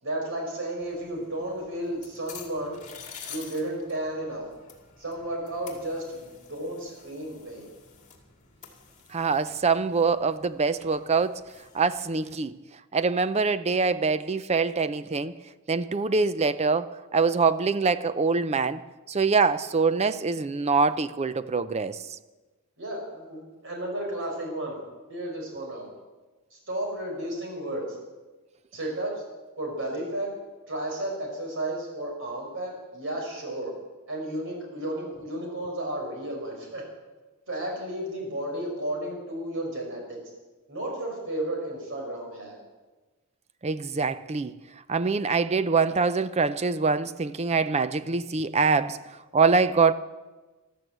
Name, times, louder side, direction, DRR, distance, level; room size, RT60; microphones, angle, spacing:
voice 1, 0.0-2.8 3.3-4.4 5.0-7.7 22.8-24.8 25.1-25.9 26.5-28.0 28.7-29.2 29.6-30.3 30.7-33.7 34.1-36.8 37.5-40.2 40.7-42.6, right 1 dB, 60° right, 4.8 m, -33 dB
sound 1, 0.8-12.3, left 7 dB, 35° left, 2.2 m, -49 dB
voice 2, 9.1-11.4 11.7-12.5 12.9-15.3 15.7-18.8 19.1-22.0 43.6-44.5 44.9-49.0 49.3-49.9, right 4 dB, 30° right, 0.5 m, -24 dB
13.0 x 12.5 x 7.9 m
head